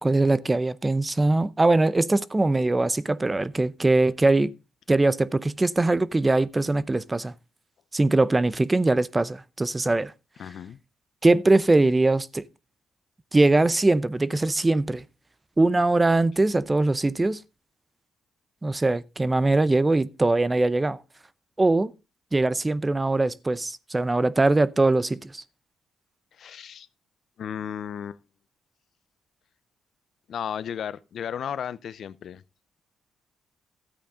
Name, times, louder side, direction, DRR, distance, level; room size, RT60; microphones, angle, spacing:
voice 1, 0.0-4.5 4.9-7.3 7.9-10.1 11.2-12.4 13.3-15.0 15.6-17.4 18.6-21.0 21.6-21.9 22.3-25.4, right 2 dB, 20° right, 0.6 m, -22 dB
voice 2, 10.4-10.8 26.4-26.9 27.4-28.2 30.3-32.4, left 8 dB, 60° left, 0.6 m, -34 dB
13.0 x 8.8 x 3.7 m
cardioid pair, 90°, 0 cm